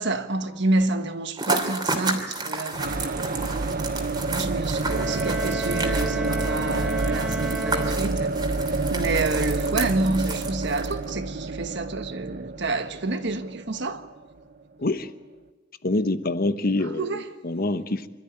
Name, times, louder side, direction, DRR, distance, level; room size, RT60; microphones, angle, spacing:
voice 1, 0.0-3.3 4.3-8.4 8.7-14.1 16.9-17.3, right 2 dB, 65° right, 1.4 m, -28 dB
sound 1, 1.4-11.1, right 3 dB, 20° right, 2.9 m, -32 dB
sound 2, 2.7-14.5, right 3 dB, 50° right, 0.7 m, -28 dB
sound 3, 4.8-8.6, right 1 dB, 5° right, 1.0 m, -34 dB
voice 2, 14.8-15.1 15.8-18.1, left 2 dB, 50° left, 1.0 m, -26 dB
26.0 x 13.5 x 9.9 m
head